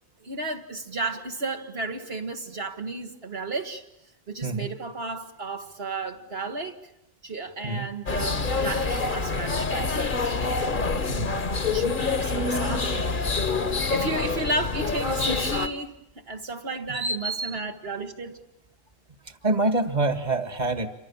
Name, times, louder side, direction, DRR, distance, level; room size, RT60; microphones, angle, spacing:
voice 1, 0.2-3.9 4.3-6.8 7.2-10.4 11.7-13.0 13.7-18.4, right 2 dB, 75° right, 1.9 m, -33 dB
voice 2, 4.4-4.7 7.6-7.9 11.1-11.4 16.9-17.6 19.2-20.9, right 2 dB, 45° right, 1.9 m, -27 dB
sound 1, 8.1-15.7, left 4 dB, 55° left, 1.4 m, -26 dB
28.5 x 25.5 x 7.2 m
omnidirectional pair, 1.0 m